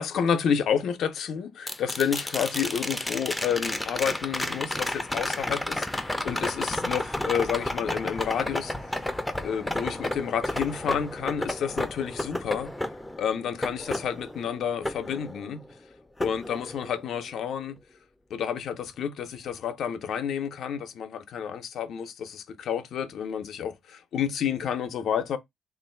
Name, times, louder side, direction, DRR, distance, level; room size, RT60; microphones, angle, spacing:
voice 1, 0.0-8.7 9.4-12.7 13.2-15.6 16.2-17.8 18.3-25.4, left 8 dB, 70° left, 0.6 m, -30 dB
sound 1, 1.7-15.8 16.2-17.2 19.5-19.6, left 1 dB, 10° left, 0.5 m, -32 dB
3.0 x 2.5 x 4.2 m
cardioid pair, 90°, 0 cm